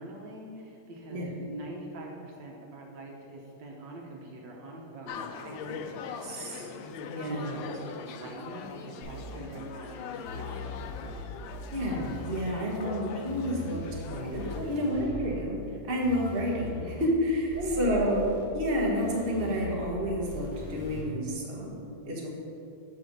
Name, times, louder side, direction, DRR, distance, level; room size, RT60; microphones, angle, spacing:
voice 1, 0.0-6.1 7.2-10.9 17.6-18.4, right 1 dB, 75° right, -1 dB, 1.6 m, -42 dB
sound 1, 5.1-14.6, left 6 dB, 85° left, 1.3 m, -41 dB
voice 2, 6.2-6.7 7.0-7.5 11.7-15.6 15.9-18.3 18.5-22.3, equal, 35° right, -3 dB, 1.3 m, -30 dB
sound 2, 9.0-9.4 10.3-11.2 11.5-12.5 13.3-15.4 16.0-17.1 17.5-18.5 19.0-21.0, left 1 dB, 25° left, 1.8 m, -40 dB
5.8 x 5.7 x 6.5 m, 2.7 s
omnidirectional pair, 2.0 m